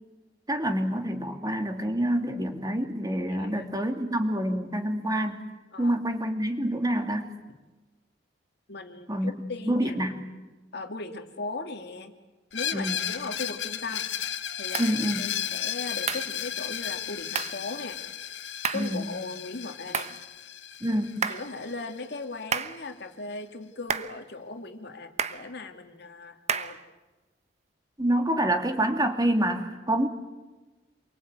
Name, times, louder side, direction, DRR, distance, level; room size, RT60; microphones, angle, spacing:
voice 1, 0.5-5.4 5.8-7.3 9.1-9.3 9.7-10.2 12.7-13.1 14.8-15.3 18.7-19.0 20.8-21.3 28.0-30.1, right 1 dB, 20° right, 5 dB, 2.6 m, -27 dB
voice 2, 3.3-3.7 5.7-6.0 8.7-10.0 10.7-12.1 12.5-14.1 14.6-18.0 18.7-20.2 21.3-26.8, left 3 dB, 65° left, 6 dB, 2.3 m, -38 dB
Screech, 12.5-22.2, left 10 dB, 85° left, 1.4 m, -34 dB
sound 1, 14.7-15.0 16.1-16.3 17.3-17.6 18.6-19.0 19.9-20.2 21.2-21.5 22.5-22.8 23.9-24.2 25.2-25.5 26.5-26.8, right 6 dB, 40° right, 1.1 m, -30 dB
28.0 x 23.0 x 9.0 m, 1.2 s
head